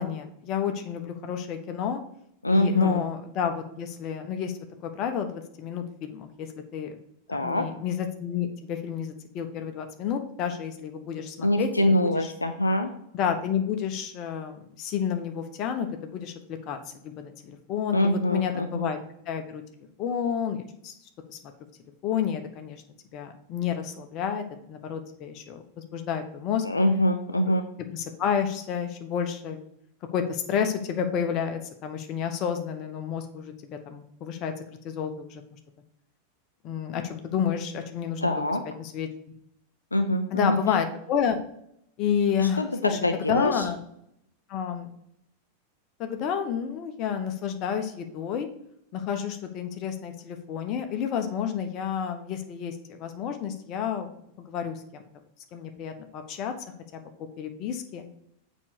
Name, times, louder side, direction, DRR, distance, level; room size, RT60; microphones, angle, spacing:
voice 1, 0.0-2.0 2.5-4.5 4.8-7.0 7.3-12.3 13.1-16.8 17.0-19.0 19.3-19.6 20.0-20.9 21.3-21.4 22.0-22.8 23.1-25.6 25.9-26.6 27.5-27.6 27.9-29.6 30.1-34.5 34.8-35.4 36.6-38.5 38.8-39.1 40.3-41.4 42.0-43.8 44.5-44.9 46.0-48.5 48.9-54.1 54.4-55.1 55.5-56.5 56.9-58.1, left 8 dB, 40° left, 6 dB, 1.1 m, -30 dB
voice 2, 2.4-3.0 7.3-7.7 11.4-12.9 17.9-18.9 26.6-27.6 38.2-38.6 39.9-40.6 42.4-43.6, left 1 dB, 80° left, 7 dB, 0.6 m, -24 dB
7.3 x 5.4 x 4.7 m, 0.74 s
figure-of-eight pair, 90°, 0 cm